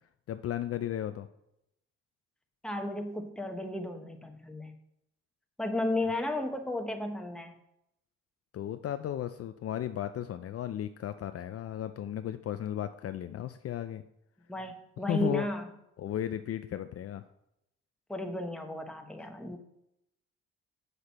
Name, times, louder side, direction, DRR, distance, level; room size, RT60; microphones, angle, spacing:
voice 1, 0.3-1.3 8.5-14.0 15.1-15.5 16.0-17.2, left 11 dB, 50° left, 10 dB, 0.5 m, -35 dB
voice 2, 2.6-4.7 5.6-7.5 14.5-15.7 18.1-19.6, left 1 dB, 5° left, 4 dB, 1.2 m, -34 dB
8.0 x 6.7 x 4.2 m, 0.81 s
cardioid pair, 90°, 30 cm